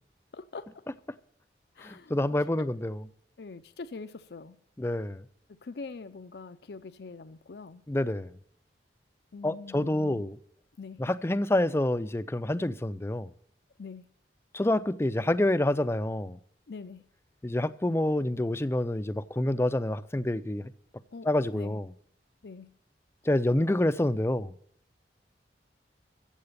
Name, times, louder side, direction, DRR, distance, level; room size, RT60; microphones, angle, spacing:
voice 1, 0.3-0.8 1.8-2.2 3.4-4.6 5.5-7.8 9.3-10.3 10.8-11.0 13.8-14.1 16.7-17.0 21.1-21.8 22.4-22.7, left 4 dB, 70° left, 0.5 m, -43 dB
voice 2, 1.8-3.0 4.8-5.2 7.9-8.3 9.4-10.4 11.0-13.3 14.5-16.4 17.4-20.7 21.3-21.9 23.3-24.5, left 1 dB, 15° left, 0.4 m, -27 dB
14.5 x 7.8 x 6.8 m
head